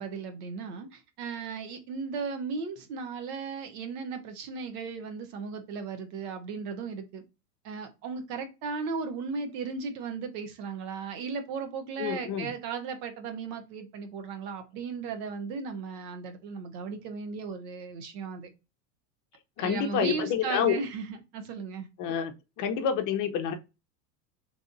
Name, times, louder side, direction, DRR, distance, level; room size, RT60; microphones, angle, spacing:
voice 1, 0.0-7.2 7.6-18.5 19.6-21.9, right 5 dB, 65° right, 1.2 m, -36 dB
voice 2, 12.0-12.5 19.6-20.8 22.0-22.3 22.6-23.5, left 8 dB, 40° left, 0.7 m, -28 dB
3.4 x 2.6 x 3.8 m
hypercardioid pair, 115°, 50 cm